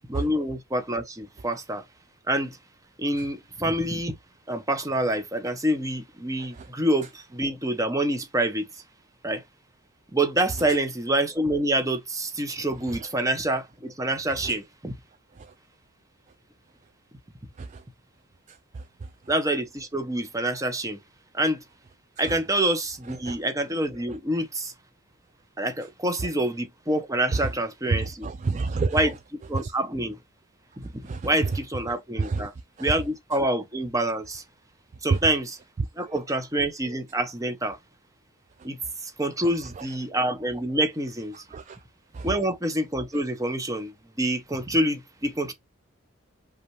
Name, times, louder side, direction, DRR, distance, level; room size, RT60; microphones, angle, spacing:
voice 1, 0.1-1.8 2.3-2.6 3.0-4.2 4.5-8.7 9.2-9.4 10.1-14.9 19.3-21.0 21.3-21.6 22.2-24.7 25.6-28.3 28.9-29.1 29.5-30.2 30.8-30.9 31.2-32.5 32.8-34.4 35.0-35.6 36.0-37.8 38.6-41.4 42.2-43.9 44.2-45.5, right 1 dB, 15° right, 0.8 m, -27 dB
voice 2, 18.5-18.8 22.3-22.4 23.3-23.4 27.3-27.4 27.9-29.0 29.6-29.7 31.0-31.3 32.2-32.5 32.8-32.9 35.1-35.2 36.1-36.2 39.8-39.9 41.3-41.8 42.1-42.3, right 4 dB, 35° right, 0.3 m, -29 dB
5.3 x 2.4 x 3.2 m
head